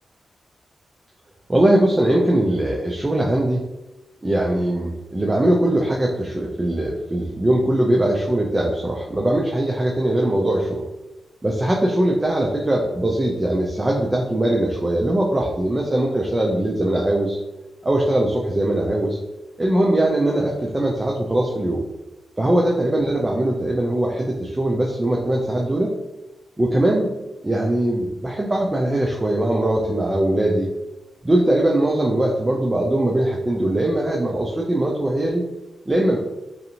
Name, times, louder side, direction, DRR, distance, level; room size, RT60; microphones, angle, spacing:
voice 1, 1.5-3.6 4.2-10.8 11.4-17.4 17.8-19.2 19.6-21.8 22.4-25.9 26.6-27.1 27.4-30.7 31.2-35.4 35.9-36.2, right 1 dB, 20° right, -2 dB, 0.4 m, -21 dB
2.7 x 2.5 x 2.7 m, 0.97 s
wide cardioid pair, 100°, 0 cm